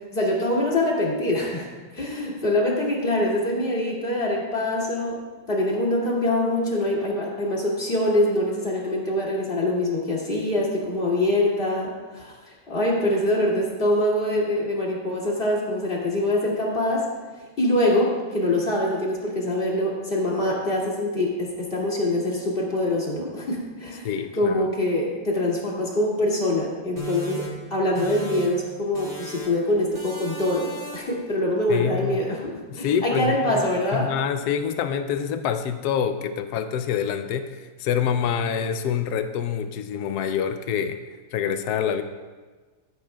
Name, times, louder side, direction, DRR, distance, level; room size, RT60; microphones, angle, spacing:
voice 1, 0.1-1.7 1.9-5.2 5.5-17.1 17.4-24.1 24.4-27.5 27.7-34.1, left 1 dB, 25° left, -5 dB, 2.5 m, -24 dB
voice 2, 24.0-24.6 31.7-32.2 32.7-33.6 33.9-41.0 41.3-42.0, left 8 dB, 90° left, 8 dB, 0.8 m, -26 dB
sound 1, 27.0-28.7 28.9-29.6 29.9-31.2, equal, 25° right, 2.1 m, -37 dB
13.5 x 13.5 x 2.3 m, 1.3 s
omnidirectional pair, 2.4 m